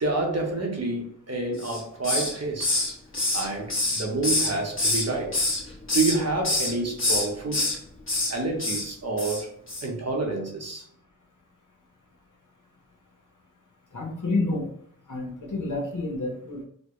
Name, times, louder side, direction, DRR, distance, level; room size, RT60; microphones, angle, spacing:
voice 1, 0.0-2.8 3.3-5.4 5.9-7.7 8.3-9.5 9.8-10.8, right 2 dB, 50° right, 1 dB, 0.9 m, -28 dB
Hiss, 1.6-2.4 2.6-5.1 5.3-6.2 6.4-6.7 7.0-7.8 8.1-8.3 8.6-8.8 9.2-9.4 9.7-9.8, left 2 dB, 40° left, 1.2 m, -26 dB
voice 2, 13.9-14.7 15.1-16.6, left 2 dB, 70° left, 0 dB, 1.0 m, -29 dB
4.2 x 2.1 x 3.0 m, 0.63 s
wide cardioid pair, 65°, 32 cm